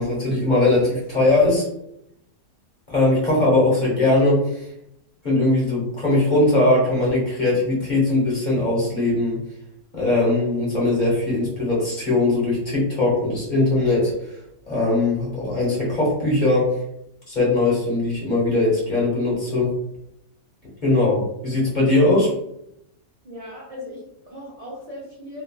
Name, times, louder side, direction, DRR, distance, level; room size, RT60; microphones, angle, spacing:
voice 1, 0.0-1.6 2.9-4.7 5.2-9.4 9.9-14.3 14.7-16.7 17.3-19.7 20.8-22.3, left 2 dB, 35° left, -5 dB, 1.0 m, -20 dB
voice 2, 23.2-25.4, left 1 dB, 45° right, -6 dB, 0.4 m, -38 dB
3.0 x 2.3 x 2.2 m, 0.79 s
omnidirectional pair, 1.5 m